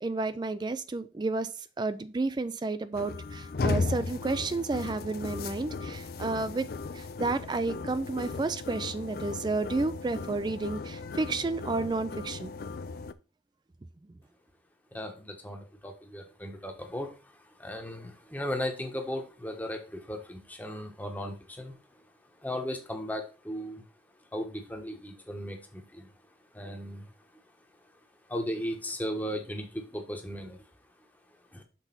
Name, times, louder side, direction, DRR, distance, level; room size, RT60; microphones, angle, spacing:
voice 1, 0.0-1.5 1.8-6.7 6.9-12.5, right 3 dB, 25° right, 0.3 m, -31 dB
sound 1, 2.9-13.1, left 3 dB, 55° left, 0.4 m, -36 dB
voice 2, 14.9-21.8 22.4-23.8 24.3-26.1 26.5-27.1 28.3-30.6 31.5-31.6, equal, 10° left, 1.0 m, -36 dB
6.0 x 4.0 x 5.6 m
head